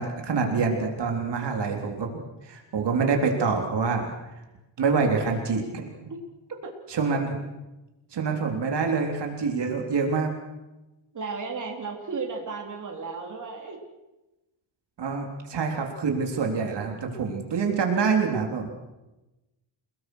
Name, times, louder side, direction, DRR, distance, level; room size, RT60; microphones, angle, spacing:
voice 1, 0.0-2.1 2.4-4.1 4.8-6.1 6.9-7.4 8.1-10.3 15.0-18.7, right 5 dB, 60° right, 2 dB, 3.7 m, -26 dB
voice 2, 11.1-13.8, right 4 dB, 40° right, 1 dB, 3.8 m, -34 dB
29.5 x 19.0 x 6.4 m, 1.0 s
wide cardioid pair, 155°, 47 cm